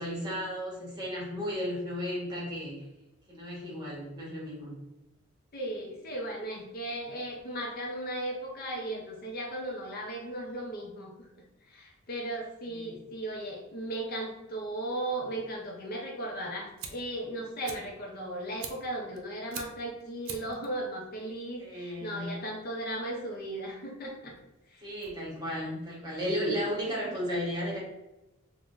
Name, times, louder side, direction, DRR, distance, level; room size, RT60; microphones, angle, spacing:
voice 1, 0.0-2.9 3.3-4.7 12.6-13.0 21.6-22.4 24.8-27.8, equal, 20° right, -5 dB, 1.0 m, -34 dB
voice 2, 5.5-11.1 11.7-24.3 24.7-24.8, right 1 dB, 45° left, -1 dB, 0.6 m, -36 dB
Fire, 16.7-26.8, right 6 dB, 75° right, 0.5 m, -48 dB
3.5 x 2.1 x 2.5 m, 0.96 s
head